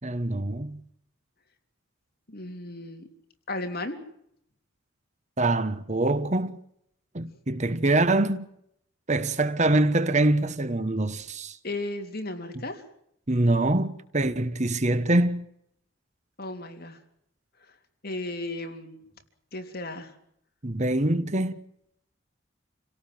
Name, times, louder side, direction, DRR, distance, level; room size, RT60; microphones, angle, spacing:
voice 1, 0.0-0.8 5.4-6.6 7.1-8.5 9.1-11.6 13.3-15.4 20.6-21.5, right 2 dB, 35° right, 1.2 m, -24 dB
voice 2, 2.3-3.1 3.5-4.0 11.6-12.8 16.4-17.0 18.0-19.0 19.5-20.1, left 2 dB, 50° left, 3.5 m, -35 dB
28.0 x 17.5 x 7.8 m
head